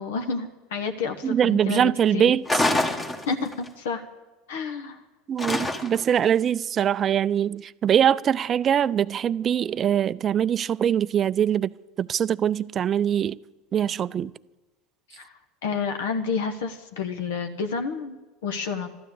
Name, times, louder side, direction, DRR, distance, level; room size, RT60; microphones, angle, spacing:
voice 1, 0.0-2.4 3.3-4.0 4.5-5.0 15.1-18.9, left 5 dB, 70° left, 1.1 m, -30 dB
voice 2, 1.2-2.4 5.3-11.7 12.0-13.4 13.7-14.3, right 9 dB, 35° right, 0.4 m, -23 dB
sound 1, 2.5-3.7 5.4-6.2, left 2 dB, 20° left, 1.5 m, -25 dB
13.0 x 12.5 x 8.1 m
figure-of-eight pair, 75°, 0 cm